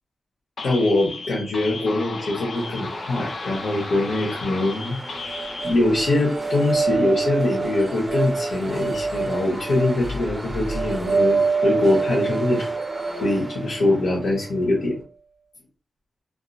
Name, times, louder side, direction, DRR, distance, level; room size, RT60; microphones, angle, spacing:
voice 1, 0.6-5.0 5.6-12.7 13.2-15.0, left 2 dB, 90° left, -5 dB, 1.2 m, -23 dB
sound 1, 0.6-5.7, left 3 dB, 65° left, 0.5 m, -34 dB
sound 2, 2.5-14.8, right 1 dB, 15° right, 0.6 m, -37 dB
sound 3, 5.3-14.4, right 4 dB, 65° right, 0.4 m, -26 dB
3.6 x 2.1 x 2.6 m, 0.36 s
wide cardioid pair, 110°, 0 cm